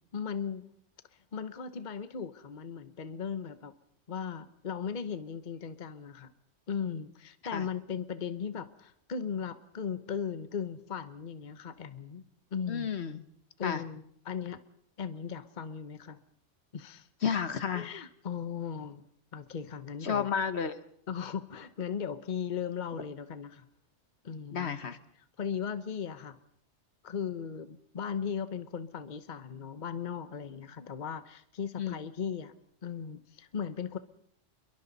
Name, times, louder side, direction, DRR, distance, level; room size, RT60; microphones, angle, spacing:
voice 1, 0.1-0.7 1.3-3.7 4.1-6.3 6.7-12.2 12.5-12.9 13.6-14.6 15.0-16.2 16.7-17.1 17.7-19.0 19.3-20.3 21.1-23.6 24.2-24.7 25.4-26.4 27.0-32.5 32.8-34.0, left 7 dB, 40° left, 11 dB, 1.1 m, -37 dB
voice 2, 12.7-13.2 13.6-13.8 17.2-17.9 20.0-20.8 24.5-25.0 31.8-32.0, left 7 dB, 65° left, 11 dB, 1.2 m, -31 dB
28.5 x 22.5 x 4.1 m, 0.68 s
omnidirectional pair, 1.2 m